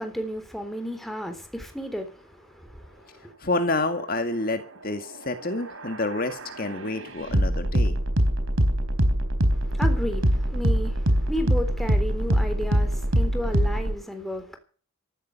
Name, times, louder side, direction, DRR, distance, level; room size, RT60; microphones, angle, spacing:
voice 1, 0.0-3.3 9.5-14.6, equal, ahead, 3.6 m, -33 dB
voice 2, 3.4-8.0, left 2 dB, 45° left, 2.0 m, -28 dB
sound 1, 5.3-14.0, equal, 70° right, 4.2 m, -24 dB
14.5 x 12.0 x 6.7 m
head